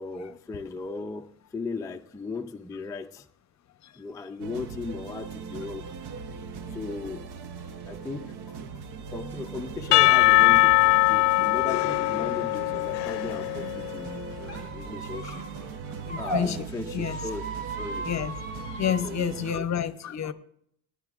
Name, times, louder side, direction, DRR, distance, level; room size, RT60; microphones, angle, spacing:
voice 1, 0.0-3.3 3.9-5.9 6.7-7.3 7.8-8.6 9.1-14.4 14.7-15.5 16.2-18.1 18.8-19.7, left 3 dB, 10° left, 4 dB, 0.4 m, -37 dB
sound 1, 4.4-19.6, right 5 dB, 75° right, 0.9 m, -39 dB
Percussion / Church bell, 9.9-14.0, left 22 dB, 85° left, 0.5 m, -21 dB
Squeak, 14.4-16.4 17.0-19.1, right 1 dB, 35° right, 4.0 m, -37 dB
voice 2, 16.1-16.7 16.9-17.2 18.0-18.3 18.7-20.3, left 8 dB, 45° left, 12 dB, 0.8 m, -29 dB
18.5 x 10.5 x 2.4 m, 0.70 s
cardioid pair, 120°, 40 cm